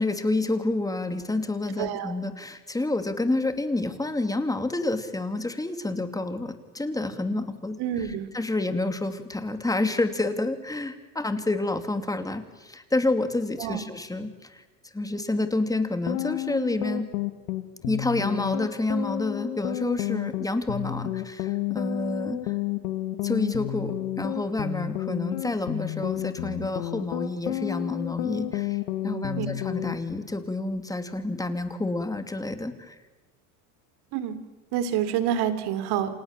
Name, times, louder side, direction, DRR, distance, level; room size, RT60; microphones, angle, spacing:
voice 1, 0.0-14.6 14.9-17.1 17.9-22.5 23.2-32.9, left 2 dB, 10° left, 8 dB, 2.7 m, -29 dB
voice 2, 1.8-2.1 7.8-8.3 13.6-13.8 29.4-29.5 34.1-34.4 34.7-36.2, right 10 dB, 60° right, 11 dB, 3.4 m, -27 dB
sound 1, 15.9-30.0, left 14 dB, 85° left, 1.8 m, -31 dB
29.0 x 26.5 x 7.4 m, 1.2 s
supercardioid pair, 115°, 43 cm